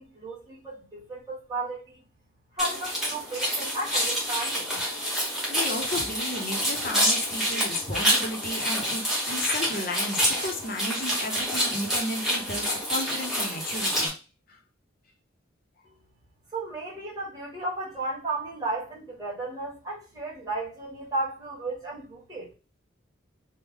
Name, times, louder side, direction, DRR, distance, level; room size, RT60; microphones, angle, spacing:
voice 1, 0.0-2.0 2.5-4.8 15.8-16.0 16.5-22.5, right 2 dB, 20° right, 1.4 m, -34 dB
sound 1, 2.6-14.1, equal, ahead, 1.1 m, -27 dB
voice 2, 5.5-14.1 14.5-14.6, left 1 dB, 45° left, 0.7 m, -33 dB
3.4 x 2.2 x 3.5 m
head